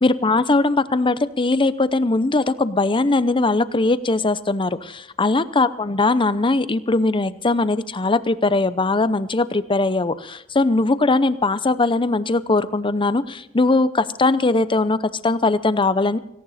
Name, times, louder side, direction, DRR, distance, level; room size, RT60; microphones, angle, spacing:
voice 1, 0.0-16.2, left 3 dB, 25° left, 14 dB, 0.7 m, -20 dB
18.0 x 17.5 x 4.2 m, 0.79 s
head